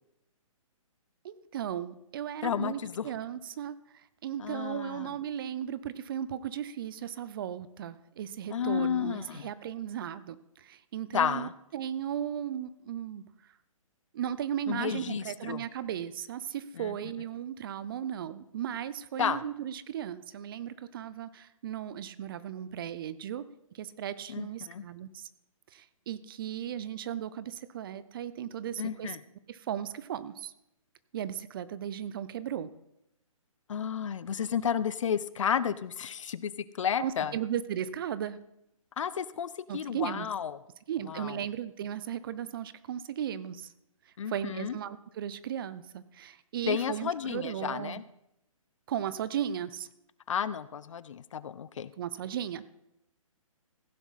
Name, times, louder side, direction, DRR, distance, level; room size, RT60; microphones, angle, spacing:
voice 1, 1.2-13.2 14.1-25.3 25.7-29.2 29.5-30.5 31.1-32.7 37.0-38.4 39.7-40.3 40.9-43.7 44.3-48.0 48.9-49.9 52.0-52.7, right 9 dB, 40° right, 16 dB, 0.7 m, -36 dB
voice 2, 2.4-3.1 4.4-5.1 8.5-9.5 11.1-11.5 14.7-15.6 16.8-17.0 19.2-19.4 24.3-24.8 28.8-29.2 33.7-37.3 39.0-40.6 41.1-41.4 44.2-44.8 46.7-48.0 50.3-51.9, left 8 dB, 60° left, 17 dB, 0.7 m, -32 dB
15.5 x 10.0 x 4.1 m, 0.82 s
hypercardioid pair, 145°, 18 cm